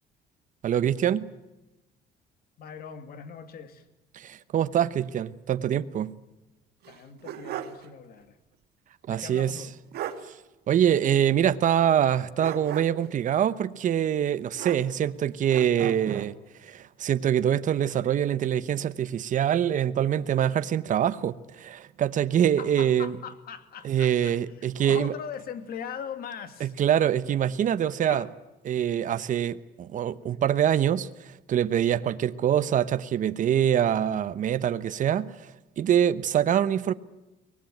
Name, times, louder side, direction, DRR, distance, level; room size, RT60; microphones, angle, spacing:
voice 1, 0.6-1.3 4.1-6.1 9.1-9.6 10.7-16.4 16.6-23.1 23.8-25.1 26.6-28.2 28.6-36.9, right 10 dB, 50° right, 1.0 m, -25 dB
voice 2, 2.6-3.9 6.9-8.4 9.1-9.7 22.6-26.7 28.1-28.3, left 7 dB, 60° left, 2.4 m, -40 dB
sound 1, 6.8-7.9 8.2-8.3 9.6-9.7 9.9-10.3 12.4-13.1 14.6-15.2 15.5-16.3, right 10 dB, 70° right, 2.0 m, -37 dB
24.0 x 19.0 x 9.3 m
cardioid pair, 110°, 17 cm